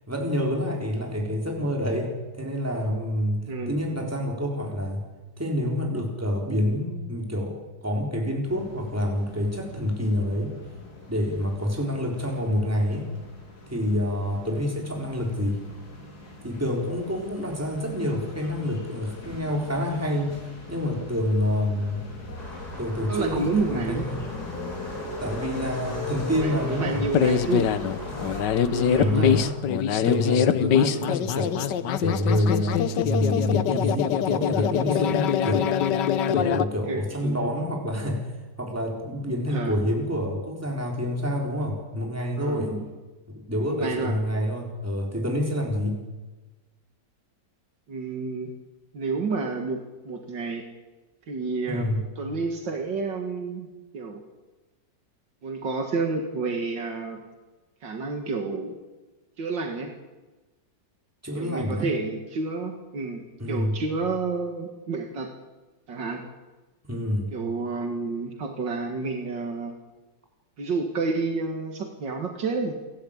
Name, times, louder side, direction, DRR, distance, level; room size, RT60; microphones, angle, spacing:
voice 1, 0.1-5.1 5.4-10.5 11.1-13.1 13.7-15.6 16.4-20.4 20.7-22.1 22.8-24.3 25.2-27.1 28.8-29.5 30.0-31.6 32.0-35.7 36.3-38.3 38.6-42.8 43.3-46.0 51.7-52.1 61.2-61.9 63.4-63.8 66.8-67.3, left 1 dB, 10° right, 0 dB, 3.9 m, -27 dB
sound 1, 8.5-28.4, left 2 dB, 60° left, 4.3 m, -40 dB
sound 2, 22.4-29.5, equal, 20° left, 5.0 m, -42 dB
voice 2, 23.1-24.0 26.4-27.7 28.5-29.3 30.9-31.2 36.8-37.5 39.5-39.7 42.4-42.9 43.7-44.2 47.9-48.5 48.9-50.7 51.3-51.9 52.2-53.7 53.9-54.3 55.4-57.2 57.8-58.8 59.4-59.9 61.4-65.3 65.9-66.2 67.3-69.7 70.6-72.8, right 4 dB, 90° right, 3 dB, 2.6 m, -30 dB
sound 3, 27.1-36.7, left 8 dB, 75° left, 1.6 m, -23 dB
29.5 x 12.5 x 8.8 m, 1.2 s
omnidirectional pair, 1.9 m